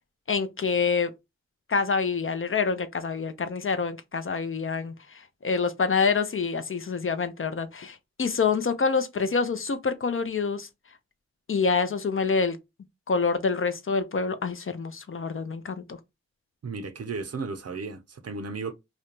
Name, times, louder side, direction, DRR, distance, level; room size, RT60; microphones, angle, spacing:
voice 1, 0.3-1.1 1.7-4.9 5.4-10.7 11.5-12.6 13.1-16.0, left 5 dB, 45° left, 0.5 m, -26 dB
voice 2, 16.6-18.7, right 4 dB, 55° right, 0.5 m, -34 dB
2.5 x 2.1 x 2.9 m
cardioid pair, 45°, 29 cm